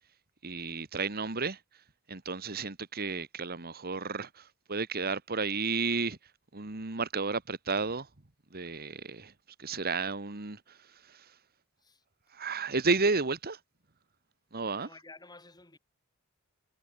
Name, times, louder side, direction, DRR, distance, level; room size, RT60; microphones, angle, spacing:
voice 1, 0.4-1.6 2.1-6.2 6.5-8.1 8.5-9.3 9.6-10.8 11.1-11.3 12.3-13.6 14.5-14.9, right 4 dB, 45° right, 1.8 m, -32 dB
voice 2, 14.8-15.8, left 3 dB, 20° left, 5.8 m, -52 dB
head